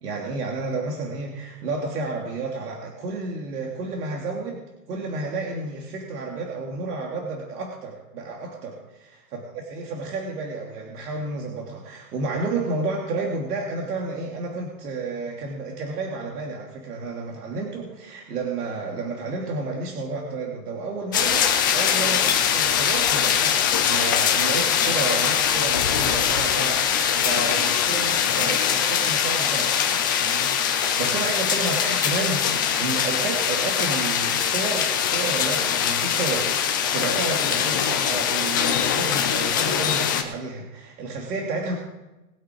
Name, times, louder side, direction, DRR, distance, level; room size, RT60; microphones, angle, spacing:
voice 1, 0.0-4.6 4.9-41.8, right 3 dB, 75° right, 0 dB, 3.0 m, -31 dB
sound 1, 21.1-40.2, left 8 dB, 15° left, 0.3 m, -22 dB
21.0 x 8.9 x 4.6 m, 1.0 s
supercardioid pair, 160°, 46 cm